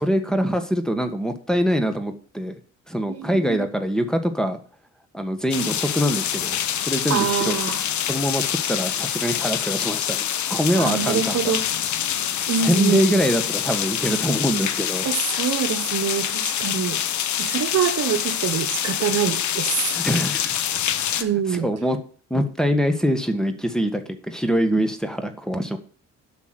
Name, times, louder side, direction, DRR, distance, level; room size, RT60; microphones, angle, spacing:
voice 1, 0.0-2.6 2.9-4.6 5.1-7.5 8.1-11.5 12.6-15.1 19.9-20.6 21.0-22.0 22.3-25.8, equal, ahead, 1.6 m, -24 dB
voice 2, 3.1-3.7 7.1-7.8 10.7-11.7 12.5-13.2 15.0-19.9 21.2-21.7, right 8 dB, 60° right, 1.2 m, -25 dB
sound 1, 5.5-21.2, left 10 dB, 70° left, 1.1 m, -26 dB
8.3 x 6.2 x 8.0 m
cardioid pair, 90°, 30 cm